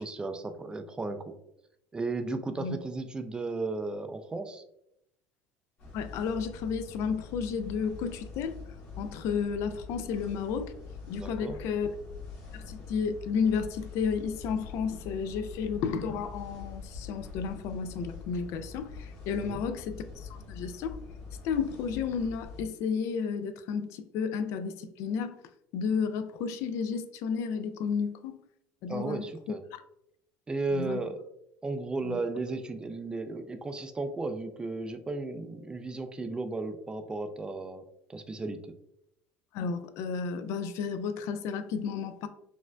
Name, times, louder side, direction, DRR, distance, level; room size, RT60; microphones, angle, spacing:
voice 1, 0.0-1.3 1.9-4.6 11.1-11.6 19.4-19.6 28.9-29.6 30.5-31.2 31.6-37.8 38.1-38.7, right 3 dB, 15° right, 0.3 m, -35 dB
sound 1, 5.8-22.6, left 5 dB, 45° left, 1.5 m, -44 dB
voice 2, 5.9-8.6 9.0-10.7 11.1-11.9 12.5-21.0 21.4-25.4 25.7-28.3 28.8-29.2 30.7-31.0 32.0-32.2 39.5-42.3, left 6 dB, 65° left, 0.3 m, -32 dB
sound 2, 32.4-37.9, left 8 dB, 25° left, 1.3 m, -61 dB
4.2 x 2.5 x 2.2 m
cardioid pair, 125°, 5 cm